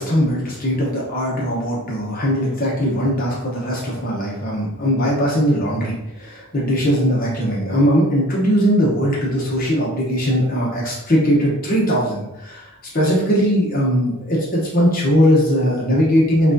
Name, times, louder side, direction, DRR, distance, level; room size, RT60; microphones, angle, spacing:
voice 1, 0.0-12.7 12.9-16.5, equal, 40° left, -4 dB, 0.8 m, -19 dB
5.9 x 2.4 x 2.6 m, 0.90 s
head